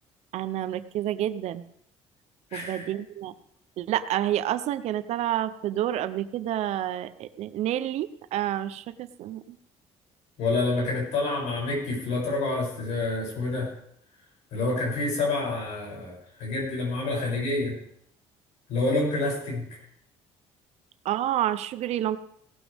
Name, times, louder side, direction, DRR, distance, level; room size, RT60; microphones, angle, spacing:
voice 1, 0.3-1.6 2.5-3.3 3.8-9.6 21.0-22.2, right 12 dB, 65° right, 13 dB, 0.7 m, -29 dB
voice 2, 2.5-2.9 10.4-13.7 14.5-17.8 18.7-19.6, left 2 dB, 70° left, -2 dB, 7.1 m, -28 dB
17.0 x 12.0 x 3.6 m, 0.71 s
cardioid pair, 130°, 12 cm